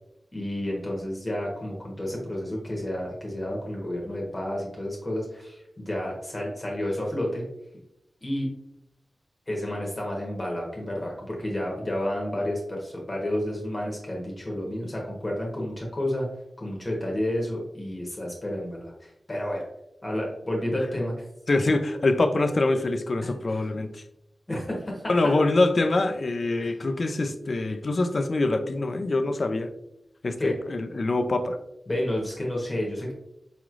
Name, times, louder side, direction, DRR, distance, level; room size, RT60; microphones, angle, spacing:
voice 1, 0.3-7.4 8.2-8.5 9.5-16.3 16.6-19.7 20.0-21.1 23.2-23.7 24.5-25.0 26.6-26.8 30.4-30.5 31.9-33.1, left 1 dB, 25° left, -3 dB, 1.0 m, -30 dB
voice 2, 21.5-24.0 25.1-29.7 30.2-31.6, left 2 dB, 50° left, 8 dB, 0.4 m, -24 dB
4.9 x 3.0 x 2.4 m, 0.84 s
wide cardioid pair, 115°, 0 cm